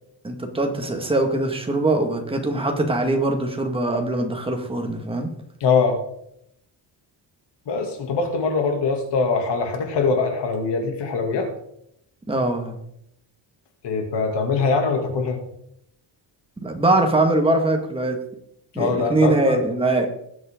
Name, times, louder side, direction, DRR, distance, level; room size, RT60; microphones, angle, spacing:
voice 1, 0.2-5.3 12.3-12.8 16.6-18.2 18.8-20.1, right 2 dB, 10° right, 3 dB, 2.0 m, -22 dB
voice 2, 5.6-6.0 7.7-11.5 13.8-15.4 18.7-19.6, left 4 dB, 65° left, 3 dB, 2.8 m, -22 dB
20.0 x 8.1 x 3.8 m, 0.73 s
cardioid pair, 165°, 45 cm